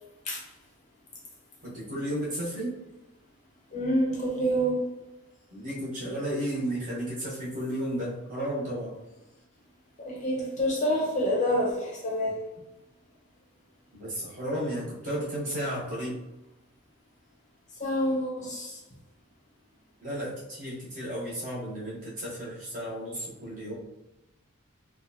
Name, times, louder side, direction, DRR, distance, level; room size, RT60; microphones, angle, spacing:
voice 1, 1.6-2.7 5.5-8.9 13.9-16.2 20.0-23.7, equal, 35° right, -7 dB, 1.0 m, -33 dB
voice 2, 3.7-4.9 10.0-12.4 17.8-18.8, equal, 35° left, -3 dB, 0.6 m, -27 dB
2.7 x 2.3 x 2.6 m, 0.96 s
head